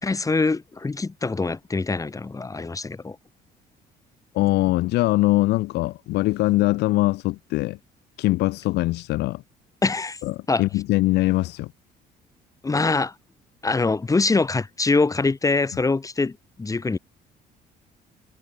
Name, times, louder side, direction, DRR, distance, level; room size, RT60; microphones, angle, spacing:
voice 1, 0.0-3.2 9.8-10.2 10.5-10.6 12.6-13.1 13.6-17.0, left 3 dB, 20° left, 4.6 m, -24 dB
voice 2, 4.3-7.8 8.2-9.4 10.2-11.7, left 19 dB, 85° left, 1.2 m, -22 dB
cardioid pair, 110°, 17 cm